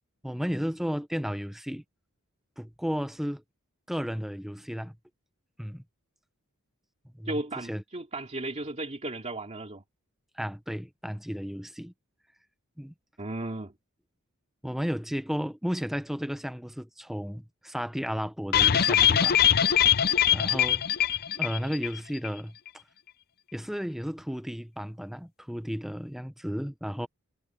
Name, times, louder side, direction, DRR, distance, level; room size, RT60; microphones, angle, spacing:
voice 1, 0.2-1.8 2.6-3.4 3.9-5.0 5.6-5.8 7.1-7.8 10.3-11.9 12.8-12.9 14.6-19.6 20.2-20.8 21.4-22.6 23.5-27.1, equal, ahead, 0.8 m, -33 dB
voice 2, 7.3-9.8 13.2-13.7, right 2 dB, 30° right, 2.6 m, -35 dB
sound 1, 18.5-22.0 22.2-22.3 22.7-22.8, left 10 dB, 45° left, 0.6 m, -22 dB
head